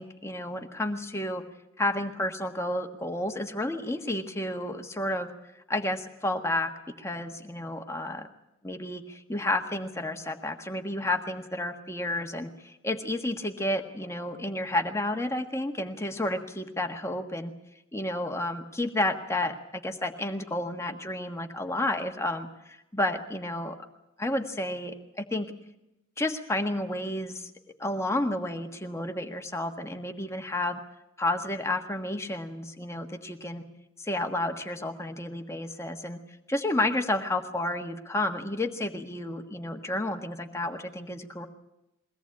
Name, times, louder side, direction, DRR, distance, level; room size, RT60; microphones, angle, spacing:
voice 1, 0.0-1.4 1.8-5.3 5.7-6.7 7.0-8.3 8.6-17.5 17.9-23.9 24.2-25.5 26.2-27.5 27.8-30.8 31.2-33.6 34.0-36.2 36.5-41.5, left 1 dB, 15° left, 5 dB, 1.5 m, -31 dB
23.0 x 17.5 x 8.6 m, 0.90 s
head